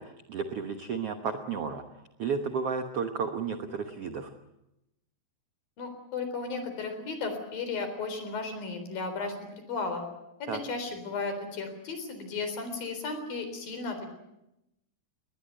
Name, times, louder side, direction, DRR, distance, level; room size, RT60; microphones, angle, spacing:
voice 1, 0.0-4.3 10.5-10.6, right 5 dB, 75° right, 7 dB, 1.4 m, -33 dB
voice 2, 5.8-9.4 9.7-10.0 10.4-14.1, left 4 dB, 60° left, 7 dB, 5.5 m, -34 dB
20.5 x 20.0 x 9.1 m, 0.89 s
omnidirectional pair, 4.6 m